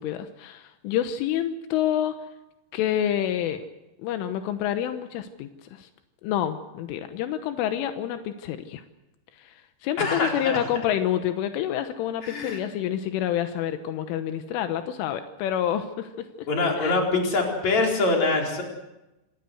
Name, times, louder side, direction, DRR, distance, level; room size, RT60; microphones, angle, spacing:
voice 1, 0.0-2.2 2.7-3.7 4.0-5.9 6.2-8.8 9.4-9.6 9.8-16.5 16.8-17.0, left 10 dB, 85° left, 8 dB, 3.6 m, -28 dB
voice 2, 10.0-10.6 12.2-12.6 16.5-18.6, left 3 dB, 35° left, 1 dB, 5.4 m, -24 dB
27.0 x 18.0 x 8.0 m, 0.98 s
omnidirectional pair, 5.6 m